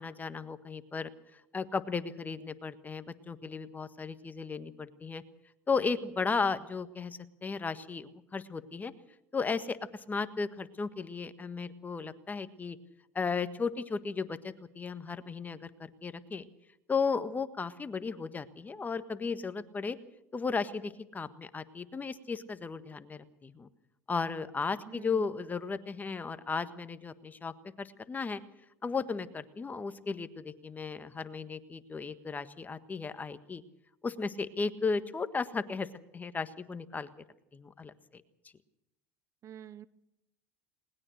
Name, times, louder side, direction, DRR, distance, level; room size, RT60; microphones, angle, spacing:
voice 1, 0.0-5.2 5.7-8.9 9.3-12.8 13.1-16.5 16.9-20.0 20.3-23.7 24.1-28.4 28.8-33.6 34.0-35.9 36.1-37.1 37.5-38.2, left 4 dB, 20° left, 12 dB, 1.5 m, -35 dB
voice 2, 24.9-25.2 39.4-39.9, right 10 dB, 40° right, 17 dB, 0.8 m, -47 dB
20.5 x 20.0 x 6.5 m, 0.83 s
hypercardioid pair, 80°, 8 cm